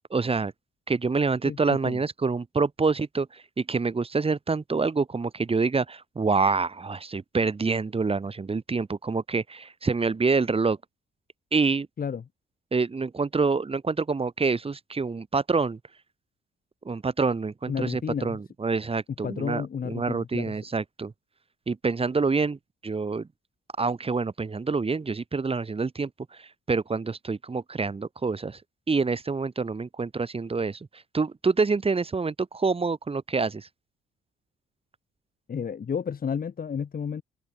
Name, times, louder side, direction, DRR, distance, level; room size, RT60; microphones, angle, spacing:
voice 1, 0.1-0.5 0.9-10.8 11.5-11.9 12.7-15.8 16.9-21.1 21.7-22.6 22.8-23.3 23.8-28.6 28.9-30.9 31.1-33.7, right 4 dB, 30° right, 3.8 m, -27 dB
voice 2, 1.4-2.0 12.0-12.2 17.7-18.4 19.2-20.5 35.5-37.2, left 7 dB, 45° left, 5.0 m, -32 dB
cardioid pair, 90°, 20 cm